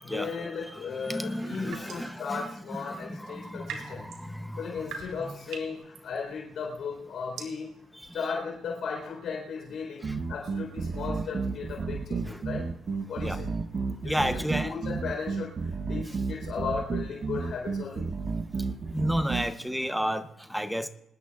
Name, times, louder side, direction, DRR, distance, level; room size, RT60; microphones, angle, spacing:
voice 1, 0.0-4.1 4.6-7.7 8.1-12.7 13.1-13.5 14.0-18.1, left 5 dB, 55° left, 0 dB, 3.7 m, -36 dB
voice 2, 0.7-2.4 2.8-4.7 5.2-5.3 7.9-8.1 10.0-10.1 12.3-12.4 13.2-13.4 14.0-14.8 18.9-20.9, equal, ahead, 9 dB, 0.7 m, -32 dB
sound 1, 1.4-2.2 3.3-11.0, right 6 dB, 85° right, 3.8 m, -46 dB
sound 2, 10.0-19.5, right 4 dB, 30° right, 0.8 m, -32 dB
25.5 x 20.0 x 2.4 m, 0.84 s
cardioid pair, 180°, 0 cm